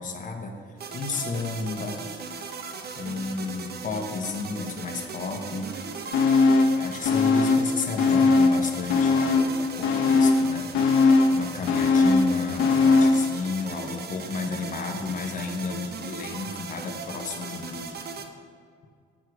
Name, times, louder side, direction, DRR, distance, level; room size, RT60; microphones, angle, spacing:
voice 1, 0.0-2.1 2.9-5.8 6.7-18.0, left 4 dB, 40° left, 2 dB, 1.0 m, -33 dB
sound 1, 0.8-18.3, right 5 dB, 55° right, 0.8 m, -38 dB
sound 2, 6.1-6.8 7.0-8.6 8.9-13.3 13.6-13.7, left 3 dB, 85° left, 1.1 m, -20 dB
7.9 x 6.3 x 4.8 m, 2.2 s
cardioid pair, 90°, 20 cm